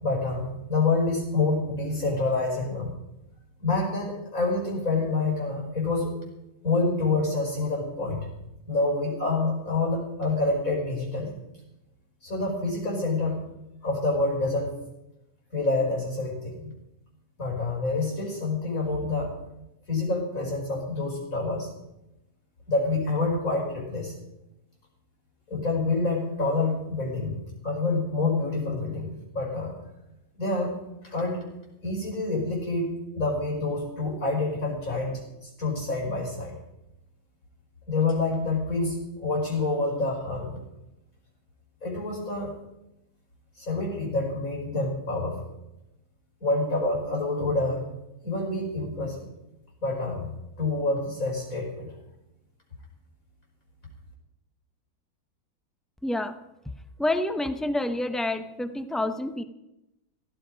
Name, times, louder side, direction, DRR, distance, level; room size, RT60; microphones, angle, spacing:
voice 1, 0.0-2.9 3.6-6.2 6.6-8.3 8.7-11.3 12.2-13.4 13.8-14.8 15.5-16.7 17.4-19.3 19.9-21.7 22.7-24.2 25.5-27.4 27.6-29.8 30.4-30.7 31.1-31.4 31.8-36.5 37.9-40.6 41.8-42.5 43.6-45.4 46.4-47.8 48.2-49.3 49.8-50.3 50.6-51.9, left 3 dB, 60° left, 0 dB, 5.4 m, -27 dB
voice 2, 56.0-56.4 57.0-59.4, left 1 dB, ahead, 8 dB, 0.3 m, -28 dB
16.5 x 15.0 x 5.2 m, 0.91 s
omnidirectional pair, 1.7 m